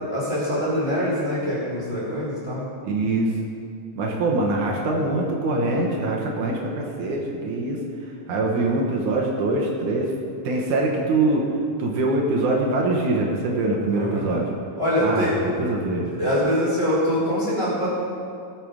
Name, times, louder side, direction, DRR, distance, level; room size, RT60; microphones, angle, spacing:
voice 1, 0.0-2.7 13.9-14.2 14.8-15.4 16.2-17.9, equal, 20° left, -8 dB, 3.4 m, -24 dB
voice 2, 2.8-3.3 4.0-7.8 8.3-10.1 10.4-11.5 11.8-14.5 15.0-16.1, right 2 dB, 75° right, -1 dB, 2.6 m, -23 dB
18.0 x 6.1 x 5.0 m, 2.4 s
omnidirectional pair, 3.7 m